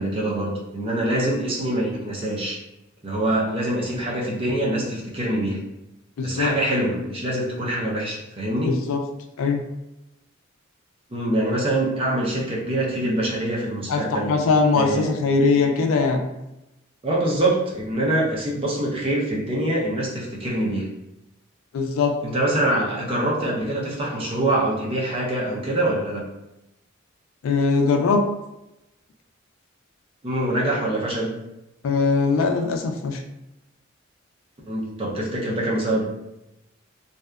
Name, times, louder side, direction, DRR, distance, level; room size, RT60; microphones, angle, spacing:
voice 1, 0.0-2.6 3.0-5.6 6.2-8.7 11.1-14.3 14.7-15.1 17.0-20.9 22.2-26.2 30.2-31.4 34.7-36.0, right 1 dB, 25° right, -4 dB, 0.5 m, -24 dB
voice 2, 6.2-6.5 8.6-9.0 9.4-9.6 13.9-16.2 21.7-22.2 27.4-28.2 31.8-33.2, left 4 dB, 75° left, 4 dB, 0.3 m, -21 dB
2.6 x 2.2 x 2.2 m, 0.91 s
head